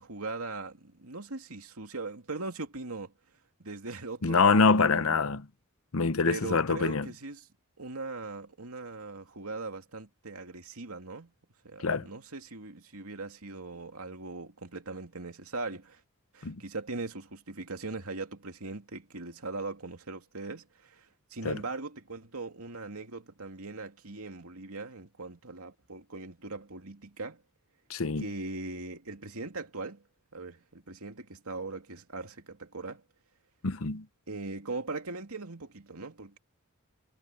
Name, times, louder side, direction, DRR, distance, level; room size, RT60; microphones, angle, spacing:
voice 1, 0.0-3.1 3.6-5.2 6.2-7.4 7.8-11.3 11.6-16.0 16.3-27.4 28.2-30.0 30.3-33.0 34.3-36.4, right 3 dB, 85° right, 2.6 m, -40 dB
voice 2, 4.2-5.5 5.9-7.1 11.8-12.1 16.4-16.6 21.4-21.6 27.9-28.3 33.6-34.1, left 4 dB, 70° left, 0.9 m, -25 dB
head